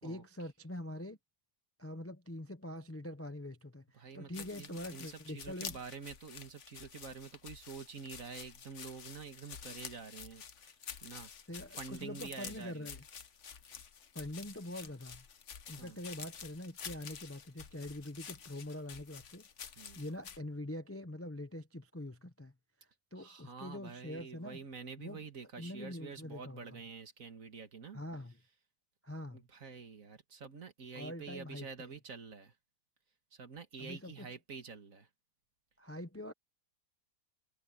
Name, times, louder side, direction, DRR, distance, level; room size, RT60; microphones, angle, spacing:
voice 1, 0.0-1.2 1.8-5.8 11.5-13.0 14.1-15.2 15.7-19.5 20.0-22.5 23.1-24.6 25.0-25.2 25.6-26.7 27.9-28.4 29.0-29.4 30.9-31.9 33.8-34.3 35.8-36.3, left 1 dB, 15° left, 0.5 m, -44 dB
voice 2, 3.9-11.3 11.8-12.9 15.8-16.0 19.8-20.0 23.2-28.0 29.3-32.5 33.3-35.1, right 5 dB, 55° right, 2.1 m, -48 dB
sound 1, 4.3-20.4, left 7 dB, 50° left, 1.3 m, -49 dB
omnidirectional pair, 1.8 m